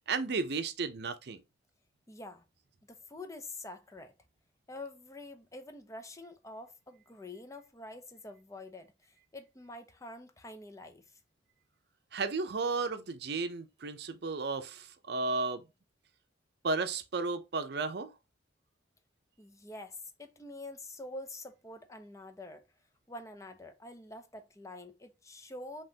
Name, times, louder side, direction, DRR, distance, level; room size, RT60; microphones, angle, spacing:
voice 1, 0.1-1.4 12.1-15.7 16.6-18.1, right 4 dB, 65° right, 0.6 m, -33 dB
voice 2, 2.1-2.4 2.9-4.1 4.7-11.2 19.4-22.7 23.1-25.8, left 2 dB, 20° left, 0.6 m, -46 dB
5.4 x 3.0 x 2.8 m
head